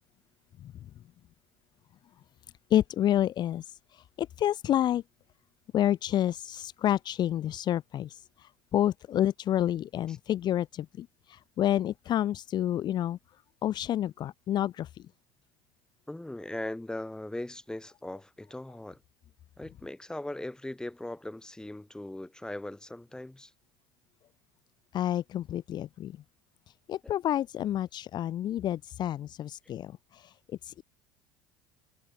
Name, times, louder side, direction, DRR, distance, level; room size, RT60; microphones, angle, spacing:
voice 1, 0.6-0.9 2.7-5.0 5.7-13.2 13.6-15.1 24.9-26.2 26.9-30.8, left 11 dB, 45° left, 0.8 m, -29 dB
voice 2, 16.1-19.0 19.6-23.5, left 1 dB, 5° left, 2.9 m, -39 dB
hypercardioid pair, 75°, 10 cm